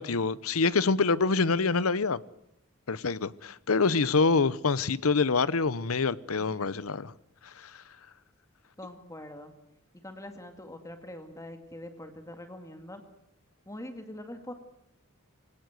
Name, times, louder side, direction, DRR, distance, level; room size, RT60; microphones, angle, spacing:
voice 1, 0.0-2.2 2.9-7.1, left 4 dB, 85° left, 0.9 m, -26 dB
voice 2, 6.4-6.7 8.8-9.5 9.9-13.0 13.7-14.5, left 1 dB, 15° left, 2.1 m, -43 dB
24.5 x 17.5 x 7.9 m
head